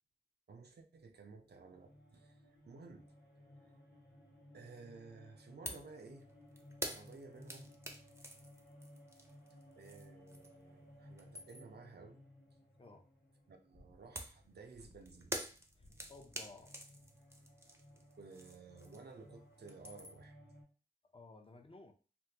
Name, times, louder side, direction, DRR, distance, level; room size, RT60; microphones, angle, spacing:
voice 1, 0.5-3.1 4.5-6.3 6.8-7.8 9.8-12.2 13.5-15.4 18.2-20.4, right 4 dB, 75° right, 0.5 m, -55 dB
sound 1, 1.4-20.6, left 1 dB, 85° left, 1.0 m, -60 dB
sound 2, 5.7-5.9 6.2-10.7 11.0-11.8 14.2-19.3 19.5-20.3, right 1 dB, 15° right, 0.6 m, -47 dB
voice 2, 12.8-13.1 15.8-16.8 21.1-21.9, left 3 dB, 35° left, 0.6 m, -56 dB
3.5 x 2.2 x 2.8 m
wide cardioid pair, 60°, 17 cm